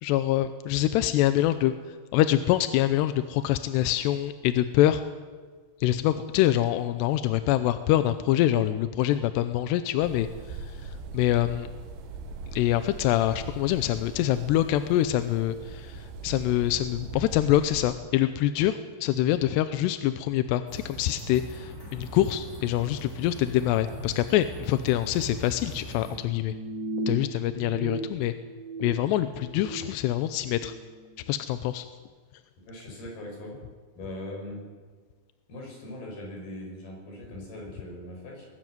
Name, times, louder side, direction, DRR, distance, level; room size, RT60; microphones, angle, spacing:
voice 1, 0.0-5.0 5.8-11.7 12.5-26.5 27.1-28.3 28.8-30.7 31.3-31.9, left 13 dB, 80° left, 11 dB, 2.6 m, -25 dB
sound 1, 10.0-17.9, right 3 dB, 85° right, 3.9 m, -41 dB
sound 2, 20.7-26.2, equal, 20° left, 4.5 m, -41 dB
sound 3, 26.1-27.9 28.2-29.8 30.2-30.6, right 2 dB, 10° right, 3.6 m, -36 dB
voice 2, 32.6-33.6 34.0-34.6 35.5-38.5, left 1 dB, 55° left, 0 dB, 7.8 m, -40 dB
21.0 x 14.0 x 9.5 m, 1.5 s
omnidirectional pair, 5.3 m